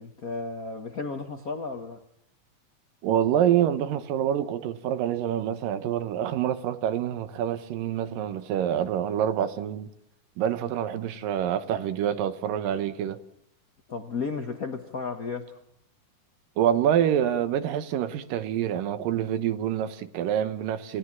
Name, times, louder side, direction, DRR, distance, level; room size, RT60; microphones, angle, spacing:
voice 1, 0.0-2.0 13.9-15.6, left 4 dB, 80° left, 0.7 m, -33 dB
voice 2, 3.0-9.9 10.4-13.2 16.6-21.0, right 10 dB, 90° right, 2.9 m, -26 dB
29.5 x 17.0 x 7.4 m
omnidirectional pair, 3.8 m